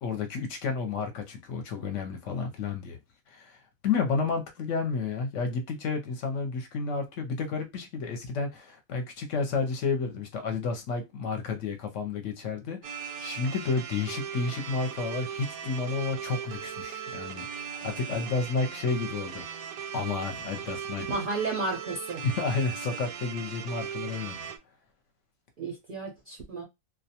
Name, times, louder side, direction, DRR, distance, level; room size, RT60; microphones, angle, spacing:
voice 1, 0.0-3.0 3.3-3.6 3.8-19.5 19.9-21.0 22.2-24.4, left 4 dB, 65° left, 0.9 m, -31 dB
sound 1, 12.8-24.6, right 7 dB, 85° right, 1.1 m, -38 dB
voice 2, 21.1-22.2 25.6-26.6, right 3 dB, 60° right, 0.5 m, -32 dB
2.4 x 2.2 x 2.7 m
omnidirectional pair, 1.5 m